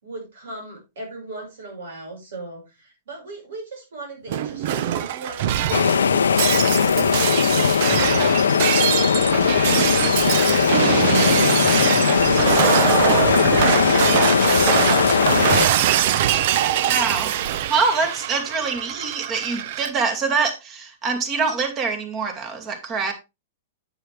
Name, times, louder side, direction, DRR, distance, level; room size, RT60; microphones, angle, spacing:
voice 1, 0.0-8.3 8.5-13.3, right 2 dB, 80° right, 2 dB, 5.6 m, -37 dB
Shatter, 4.3-19.9, right 11 dB, 60° right, 0.7 m, -23 dB
sound 1, 5.7-15.7, left 6 dB, 90° left, 0.6 m, -19 dB
voice 2, 16.9-23.1, right 4 dB, 30° right, 5 dB, 2.3 m, -25 dB
9.2 x 8.0 x 3.3 m, 0.25 s
hypercardioid pair, 125°, 0 cm